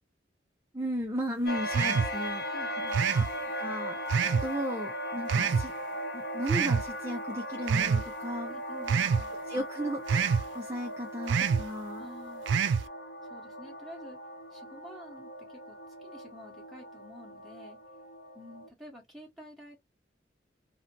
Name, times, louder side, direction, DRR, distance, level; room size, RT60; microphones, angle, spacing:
voice 1, 0.7-2.4 3.1-3.3 3.6-4.0 4.3-5.7 6.1-8.6 9.5-12.1, equal, 15° right, 0.4 m, -35 dB
sound 1, 1.5-18.7, equal, 55° left, 0.8 m, -38 dB
sound 2, 1.7-2.1 2.9-3.3 4.1-4.5 5.3-5.7 6.5-6.8 7.7-8.0 8.9-9.2 10.1-10.4 11.3-11.6 12.5-12.8, right 6 dB, 85° right, 0.3 m, -26 dB
voice 2, 2.5-3.1 8.5-9.3 12.0-12.5 13.3-14.2 14.5-17.8 18.3-19.8, equal, ahead, 1.3 m, -49 dB
2.7 x 2.1 x 2.8 m
head